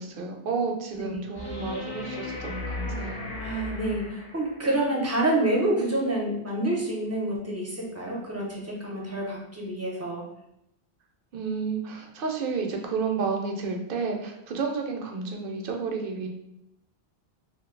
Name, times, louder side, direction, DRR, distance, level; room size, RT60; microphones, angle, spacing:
voice 1, 0.0-3.3 11.3-16.3, right 4 dB, 60° right, 2 dB, 0.7 m, -31 dB
sound 1, 1.4-4.7 7.4-7.5, left 2 dB, 45° left, 0.7 m, -36 dB
voice 2, 3.4-10.2, right 1 dB, 20° right, -3 dB, 0.5 m, -28 dB
2.5 x 2.2 x 3.7 m, 0.80 s
omnidirectional pair, 1.1 m